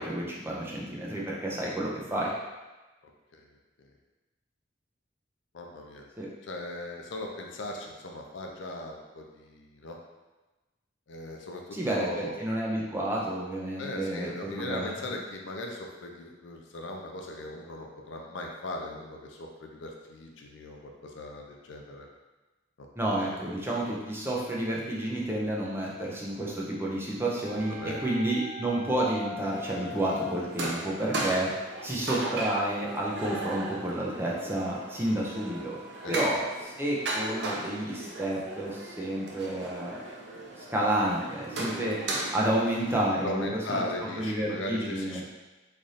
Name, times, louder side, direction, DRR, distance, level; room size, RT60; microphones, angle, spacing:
voice 1, 0.0-2.3 6.2-6.3 11.7-15.2 23.0-31.5 31.8-35.7 36.1-40.0 40.6-42.0 42.3-45.2, right 1 dB, 10° right, -4 dB, 0.5 m, -30 dB
voice 2, 5.5-6.1 6.4-10.0 11.1-11.6 11.9-12.4 13.8-22.1 22.8-22.9 27.5-28.0 36.0-36.2 43.2-45.2, left 1 dB, 75° left, 1 dB, 0.5 m, -38 dB
sound 1, 27.3-31.3 32.1-36.6, left 2 dB, 80° right, 1.4 m, -44 dB
sound 2, 29.5-43.1, right 2 dB, 60° right, 0.6 m, -37 dB
3.2 x 2.5 x 4.0 m, 1.2 s
head